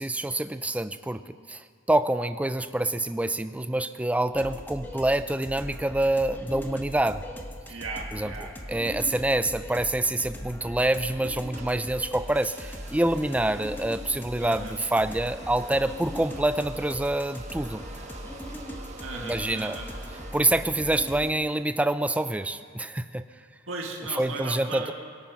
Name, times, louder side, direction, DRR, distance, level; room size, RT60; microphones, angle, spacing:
voice 1, 0.0-7.2 8.1-8.3 8.7-17.8 19.2-19.8 20.3-23.2 24.2-24.9, right 1 dB, 5° right, 12 dB, 0.4 m, -26 dB
sound 1, 4.3-21.3, equal, 10° left, 1.1 m, -40 dB
voice 2, 7.7-8.5 14.4-14.8 19.0-19.9 23.7-24.9, right 3 dB, 75° right, 0 dB, 2.1 m, -36 dB
sound 2, 11.5-21.7, right 2 dB, 35° right, 1.3 m, -47 dB
24.0 x 9.0 x 5.7 m, 2.1 s
head